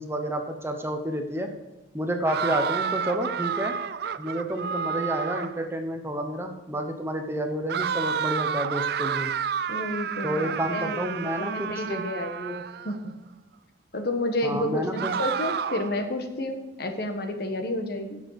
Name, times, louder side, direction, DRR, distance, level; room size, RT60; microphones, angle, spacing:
voice 1, 0.0-1.5 1.9-3.7 4.2-9.3 10.2-12.1 14.4-15.1, right 1 dB, 15° right, 5 dB, 0.9 m, -30 dB
sound 1, 2.3-5.7 7.7-13.0 15.0-16.0, right 7 dB, 60° right, 0.4 m, -30 dB
voice 2, 9.7-13.1 13.9-18.2, left 1 dB, 55° left, 5 dB, 1.3 m, -31 dB
10.5 x 7.2 x 4.8 m, 1.1 s
head